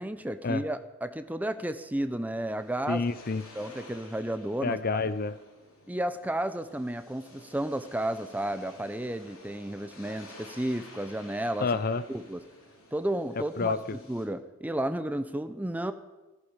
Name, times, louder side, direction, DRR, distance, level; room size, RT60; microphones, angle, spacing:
voice 1, 0.0-3.0 3.5-5.0 5.9-11.7 12.1-12.4 12.9-15.9, right 1 dB, 5° right, 10 dB, 0.5 m, -32 dB
sound 1, 2.1-14.2, left 2 dB, 65° left, 3.0 m, -52 dB
voice 2, 2.9-3.4 4.6-5.3 11.6-12.0 13.6-13.8, left 4 dB, 40° left, 14 dB, 0.5 m, -28 dB
15.0 x 14.5 x 5.1 m, 1.1 s
head